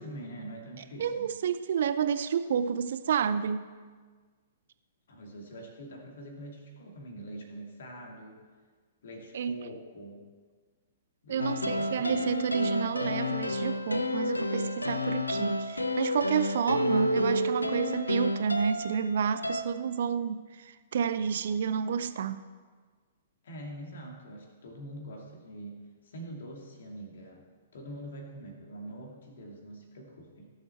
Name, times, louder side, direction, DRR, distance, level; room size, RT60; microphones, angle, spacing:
voice 1, 0.0-1.3 5.1-8.4 9.0-10.3 11.2-12.3 23.4-27.5 27.7-30.5, right 1 dB, 55° left, 1 dB, 2.5 m, -44 dB
voice 2, 1.0-3.7 9.3-9.7 11.3-22.4, right 7 dB, 55° right, 12 dB, 0.5 m, -30 dB
sound 1, 11.4-19.6, left 1 dB, 80° left, 0.7 m, -30 dB
17.0 x 7.3 x 4.4 m, 1.5 s
figure-of-eight pair, 115°, 0 cm